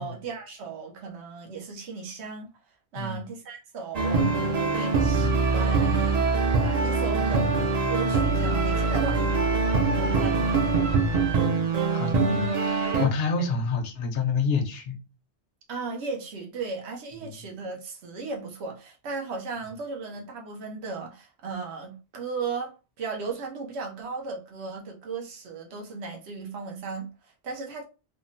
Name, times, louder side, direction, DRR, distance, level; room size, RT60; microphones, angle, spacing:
voice 1, 0.0-2.5 2.9-6.3 6.6-9.2 9.9-10.8 15.7-27.8, right 4 dB, 85° right, 1.0 m, -36 dB
sound 1, 3.9-13.1, right 4 dB, 55° right, 0.4 m, -23 dB
voice 2, 11.9-15.0 17.2-17.4, left 4 dB, 70° left, 0.8 m, -28 dB
3.5 x 2.0 x 2.5 m
omnidirectional pair, 1.1 m